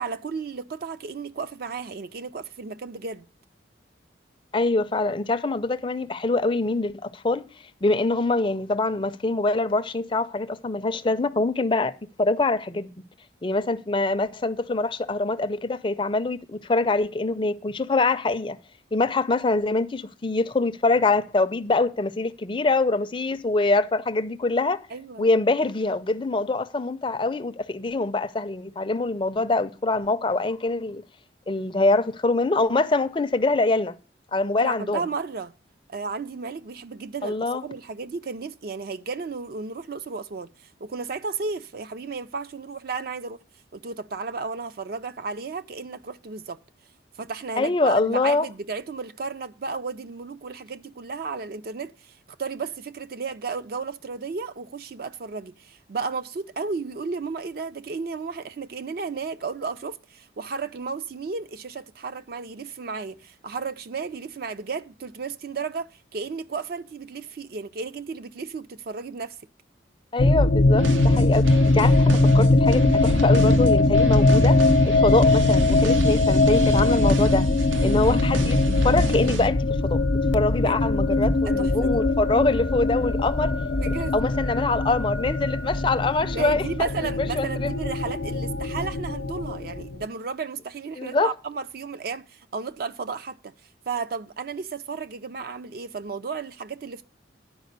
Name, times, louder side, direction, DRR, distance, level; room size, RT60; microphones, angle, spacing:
voice 1, 0.0-3.3 24.9-25.4 34.6-35.5 35.9-43.4 43.7-46.6 47.2-69.4 80.6-80.8 81.1-82.0 83.8-84.1 86.3-93.5 93.9-97.0, right 4 dB, 50° right, 0.4 m, -33 dB
voice 2, 4.5-7.5 7.8-12.9 13.4-18.6 18.9-24.9 25.2-31.0 31.5-34.0 34.3-35.0 37.2-37.6 47.6-48.5 70.1-77.5 77.8-78.6 78.8-80.0 80.3-83.6 84.1-86.9 87.4-87.7 91.0-91.3, left 3 dB, 25° left, 0.4 m, -24 dB
sound 1, 70.2-90.0, left 2 dB, 70° left, 0.7 m, -21 dB
sound 2, 70.8-79.5, right 3 dB, 90° right, 0.7 m, -31 dB
10.0 x 4.9 x 6.6 m
head